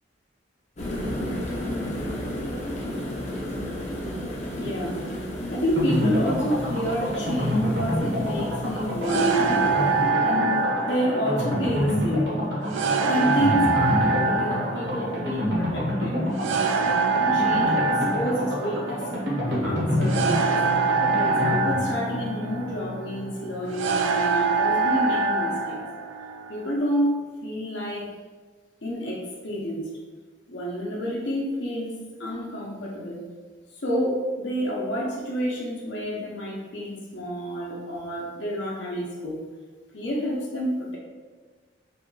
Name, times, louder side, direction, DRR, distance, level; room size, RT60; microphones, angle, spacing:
sound 1, 0.8-10.1, left 1 dB, 35° left, 0.6 m, -33 dB
voice 1, 4.6-5.0 5.5-9.8 10.2-12.4 13.0-16.2 17.3-19.1 19.5-20.6 21.1-25.8 26.5-27.1 27.4-28.1 28.8-29.9 30.5-31.9 32.2-33.2 33.8-39.4 39.9-41.0, equal, 70° left, -4 dB, 0.8 m, -29 dB
sound 2, 5.8-24.4 24.6-24.7 25.0-25.1, equal, 65° right, 1.1 m, -28 dB
sound 3, 9.0-26.7, right 4 dB, 85° right, 0.3 m, -25 dB
3.3 x 2.3 x 3.9 m, 1.4 s
head